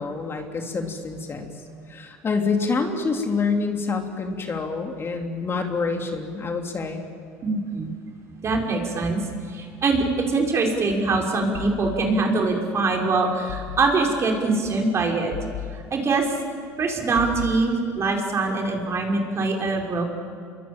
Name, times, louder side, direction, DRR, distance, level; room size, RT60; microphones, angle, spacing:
voice 1, 0.0-1.5 1.9-7.0, left 4 dB, 35° left, 3 dB, 3.4 m, -27 dB
voice 2, 7.4-7.9 8.4-9.2 9.5-15.3 15.9-16.3 16.8-20.0, right 3 dB, 40° right, 1 dB, 5.5 m, -23 dB
sound 1, 11.5-12.6 13.5-14.4 15.3-16.4 17.1-18.2, left 10 dB, 75° left, 1.6 m, -37 dB
27.0 x 22.5 x 8.9 m, 2.2 s
supercardioid pair, 85°, 7 cm